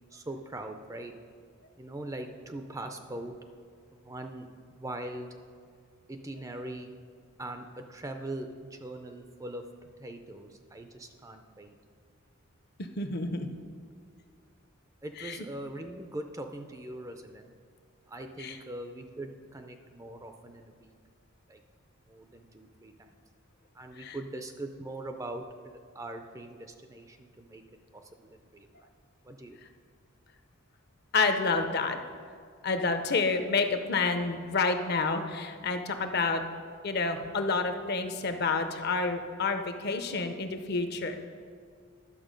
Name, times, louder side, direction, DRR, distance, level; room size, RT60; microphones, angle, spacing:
voice 1, 0.1-1.1 1.8-3.3 3.9-5.3 6.1-6.9 7.4-9.6 10.0-11.7 15.0-17.5 18.1-20.9 21.5-21.6 22.1-23.1 23.8-27.6 27.9-28.7 29.3-29.6, right 1 dB, 15° right, 6 dB, 0.4 m, -41 dB
voice 2, 13.0-13.5 15.1-15.5 18.4-18.6 24.0-24.2 31.1-32.0 32.6-36.4 36.8-41.1, left 4 dB, 50° left, 7 dB, 0.6 m, -29 dB
11.0 x 6.8 x 5.1 m, 2.1 s
head